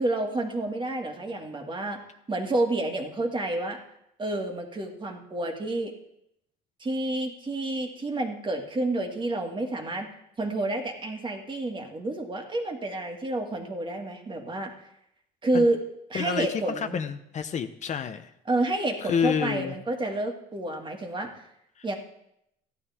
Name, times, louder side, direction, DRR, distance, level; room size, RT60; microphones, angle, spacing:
voice 1, 0.0-2.0 2.3-3.8 4.2-5.9 6.8-10.1 10.4-14.7 15.4-15.8 16.1-17.0 18.5-21.3 21.8-21.9, right 2 dB, 30° right, 2 dB, 2.2 m, -29 dB
voice 2, 16.1-18.3 19.0-19.7 21.8-21.9, left 7 dB, 45° left, 8 dB, 0.8 m, -29 dB
15.0 x 11.0 x 3.6 m, 0.79 s
cardioid pair, 110°, 17 cm